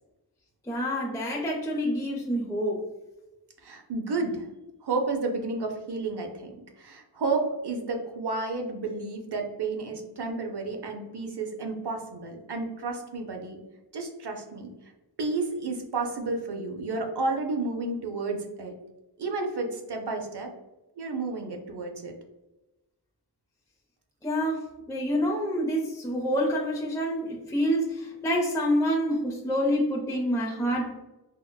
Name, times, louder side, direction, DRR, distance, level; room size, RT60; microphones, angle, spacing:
voice 1, 0.7-2.8 24.2-24.6 24.9-30.9, equal, 10° left, -2 dB, 0.5 m, -27 dB
voice 2, 3.6-4.5 4.8-6.5 6.8-13.6 13.9-14.7 15.2-18.7 19.2-20.5 21.0-22.1, right 3 dB, 70° right, 3 dB, 0.6 m, -31 dB
3.9 x 2.1 x 2.2 m, 1.0 s
wide cardioid pair, 50°, 41 cm